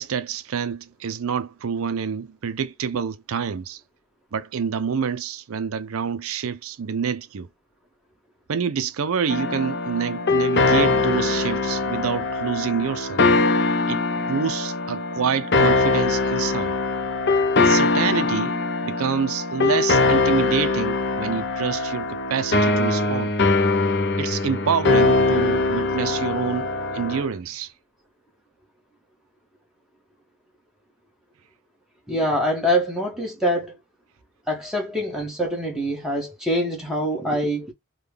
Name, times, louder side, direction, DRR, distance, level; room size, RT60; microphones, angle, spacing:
voice 1, 0.0-3.8 4.3-7.5 8.5-13.2 13.9-14.0 14.3-16.7 17.6-23.3 24.2-27.7, right 7 dB, 70° right, 0.5 m, -27 dB
sound 1, 9.3-27.3, left 3 dB, 50° left, 0.6 m, -22 dB
voice 2, 32.1-33.8 34.5-37.7, equal, ahead, 1.1 m, -24 dB
3.7 x 2.2 x 3.2 m
head